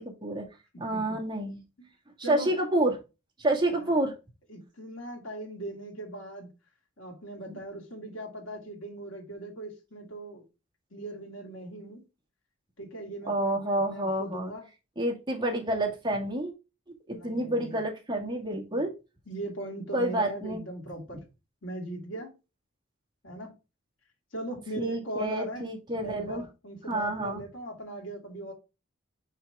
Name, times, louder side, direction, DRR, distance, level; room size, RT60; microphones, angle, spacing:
voice 1, 0.8-1.6 2.3-3.0 3.4-4.1 7.5-7.6 13.3-14.5 15.0-16.5 17.1-18.9 19.9-20.6 24.8-26.5 26.9-27.4, right 1 dB, 20° right, 1.8 m, -28 dB
voice 2, 4.5-6.5 7.0-10.4 10.9-12.0 12.8-14.7 17.1-17.8 18.7-18.8 19.3-21.2 21.6-22.3 23.2-23.5 24.3-25.7 25.9-28.5, right 1 dB, 70° left, 2.6 m, -39 dB
5.8 x 5.6 x 3.5 m
head